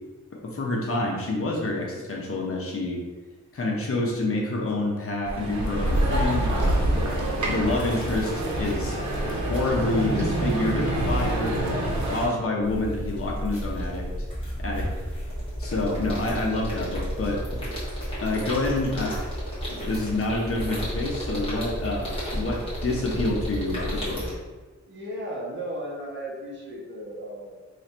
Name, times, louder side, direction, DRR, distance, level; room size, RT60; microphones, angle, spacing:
voice 1, 0.4-3.0 3.5-6.9 7.5-8.3 8.6-9.0 9.4-11.6 12.1-14.1 14.6-14.9 15.6-17.4 18.2-19.2 19.7-24.2, left 2 dB, 50° left, -1 dB, 0.6 m, -27 dB
sound 1, 5.2-12.3, right 1 dB, 75° right, 0.8 m, -26 dB
voice 2, 7.1-7.5 24.1-24.4 24.9-27.6, right 1 dB, 40° right, -4 dB, 0.8 m, -36 dB
sound 2, 12.6-24.3, equal, 20° left, 1.2 m, -32 dB
3.1 x 2.5 x 4.2 m, 1.3 s
wide cardioid pair, 175°, 29 cm